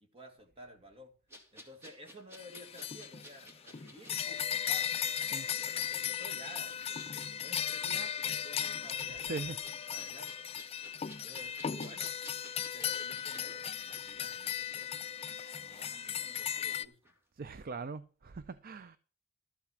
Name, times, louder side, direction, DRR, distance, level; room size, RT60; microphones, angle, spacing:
voice 1, 0.1-1.1 1.5-4.9 5.5-9.4 9.9-10.5 11.2-12.3 12.7-15.1 15.6-17.1, equal, 30° right, 2.1 m, -53 dB
sound 1, 1.3-16.8 17.0-17.2, equal, 10° right, 2.2 m, -56 dB
sound 2, 2.4-16.9, left 9 dB, 30° left, 0.4 m, -37 dB
voice 2, 9.2-9.6 17.3-19.0, right 4 dB, 45° right, 0.5 m, -41 dB
13.0 x 5.8 x 6.3 m
head